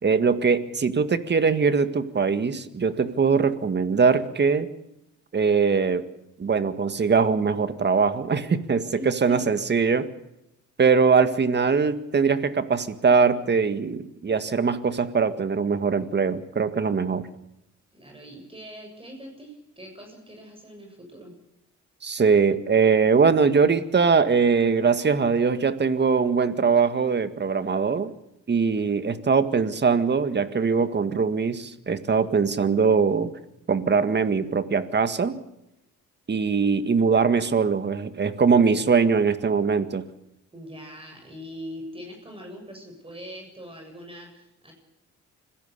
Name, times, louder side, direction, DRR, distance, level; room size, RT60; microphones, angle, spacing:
voice 1, 0.0-4.7 5.3-6.1 6.4-10.1 10.8-17.3 22.0-28.1 28.5-33.3 33.7-35.4 36.3-40.0, right 5 dB, 35° right, 11 dB, 1.8 m, -22 dB
voice 2, 9.0-9.4 17.9-21.3 36.5-36.8 40.5-44.7, equal, 20° right, 2 dB, 7.1 m, -42 dB
26.0 x 16.5 x 6.9 m, 0.86 s
cardioid pair, 90°, 30 cm